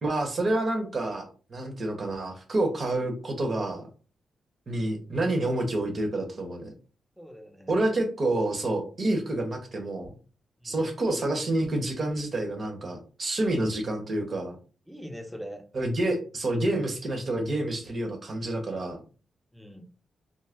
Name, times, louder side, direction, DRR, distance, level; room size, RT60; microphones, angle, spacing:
voice 1, 0.0-3.8 4.7-6.7 7.7-10.1 10.6-14.6 15.7-19.0, right 1 dB, 50° right, 3 dB, 1.0 m, -28 dB
voice 2, 7.2-7.8 10.6-10.8 14.9-15.6 19.5-19.9, equal, ahead, 4 dB, 0.8 m, -42 dB
2.5 x 2.1 x 3.4 m, 0.36 s
supercardioid pair, 45°, 0 cm